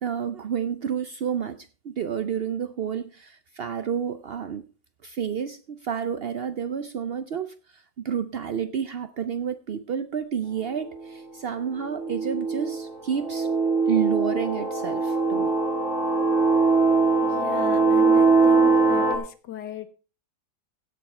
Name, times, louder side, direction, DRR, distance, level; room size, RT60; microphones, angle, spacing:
voice 1, 0.0-4.6 5.0-13.5 13.9-15.5, right 8 dB, 85° right, 0.5 m, -30 dB
Increasing Minor Tone, 10.8-11.0 11.8-19.2, right 3 dB, 45° right, 2.1 m, -21 dB
voice 2, 17.2-19.9, left 10 dB, 90° left, 1.7 m, -36 dB
16.5 x 7.1 x 4.3 m
omnidirectional pair, 1.8 m